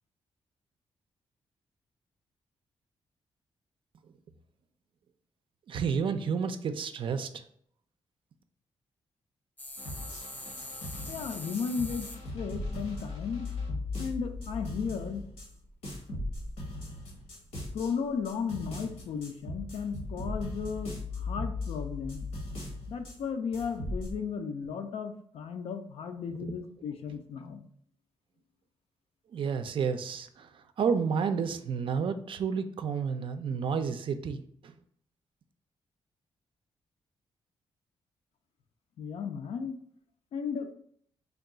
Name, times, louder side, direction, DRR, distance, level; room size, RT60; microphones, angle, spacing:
voice 1, 5.7-7.4 26.3-26.5 29.3-34.8, right 6 dB, 55° right, 9 dB, 0.4 m, -31 dB
sound 1, 9.6-12.2 14.2-14.3 14.6-14.7 15.0-15.1 15.5-16.8 17.2-18.6 19.0-19.1 19.7-20.1 20.5-20.6, left 1 dB, 15° left, 0.5 m, -44 dB
sound 2, 9.8-15.5 15.8-17.9 18.2-23.2 23.5-24.1, left 2 dB, 90° left, 1.2 m, -38 dB
voice 2, 11.1-13.5 14.0-15.3 17.7-22.3 22.9-27.6 39.0-39.8 40.3-40.7, left 6 dB, 75° left, 6 dB, 0.5 m, -35 dB
3.4 x 2.3 x 3.8 m, 0.64 s
cardioid pair, 100°, 10 cm